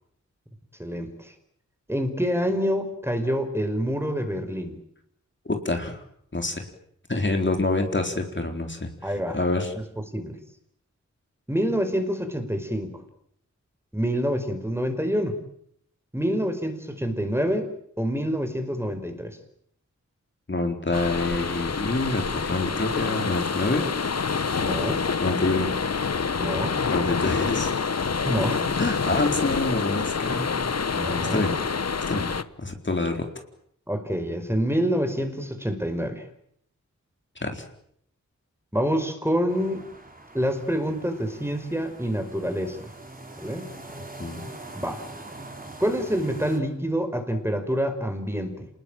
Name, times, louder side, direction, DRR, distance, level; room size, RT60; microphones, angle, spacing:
voice 1, 0.8-1.3 1.9-4.8 9.0-9.4 10.1-10.4 11.5-13.0 13.9-15.4 16.1-17.7 18.0-19.4 24.6-25.0 26.4-26.8 28.3-28.8 30.9-31.4 33.9-36.2 38.7-39.8 40.3-42.9 43.4-43.7 44.7-45.0 45.8-48.7, equal, 10° right, 7 dB, 5.3 m, -27 dB
voice 2, 5.4-6.0 6.3-6.6 7.1-9.7 20.5-23.9 25.2-25.7 26.9-27.7 28.8-30.6 31.0-31.5 32.1-32.3 32.6-33.3 37.4-37.6 44.2-44.5, left 2 dB, 40° left, 4 dB, 4.3 m, -27 dB
sound 1, 20.9-32.4, left 5 dB, 55° left, 1.2 m, -27 dB
sound 2, 39.5-46.6, right 2 dB, 30° right, 5.1 m, -43 dB
27.5 x 20.5 x 9.1 m, 0.70 s
wide cardioid pair, 55°, 30 cm